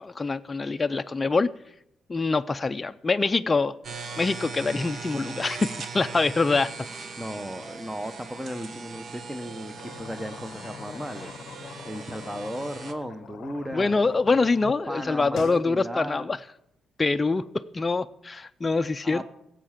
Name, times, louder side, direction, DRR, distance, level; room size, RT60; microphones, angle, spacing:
voice 1, 0.0-1.5 2.1-3.7 4.2-6.7 13.7-16.4 17.0-19.2, left 3 dB, 25° left, 9 dB, 0.4 m, -25 dB
sound 1, 3.8-12.9, right 4 dB, 50° right, 1.1 m, -40 dB
voice 2, 7.2-11.5 11.8-14.0 14.9-16.3 19.0-19.2, equal, 10° right, 8 dB, 0.8 m, -36 dB
sound 2, 9.7-14.8 15.1-15.6, left 8 dB, 65° left, 0.6 m, -43 dB
16.0 x 7.5 x 5.8 m, 0.79 s
cardioid pair, 90°, 0 cm